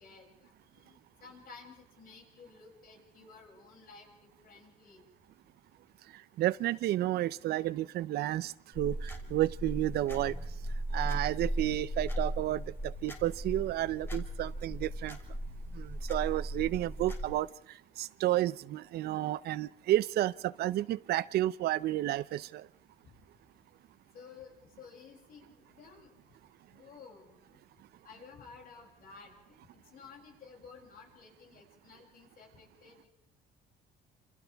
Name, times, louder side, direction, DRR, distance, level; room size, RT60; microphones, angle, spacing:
voice 1, 0.0-5.0 23.0-23.2 24.1-26.2 26.7-27.6 28.0-33.1, left 5 dB, 60° left, -1 dB, 7.2 m, -54 dB
voice 2, 6.4-10.3 10.9-15.2 15.7-22.7, right 14 dB, 70° right, 18 dB, 0.7 m, -31 dB
sound 1, 8.7-17.3, right 1 dB, 15° left, 3.4 m, -37 dB
28.0 x 27.5 x 3.5 m, 0.81 s
cardioid pair, 110°, 17 cm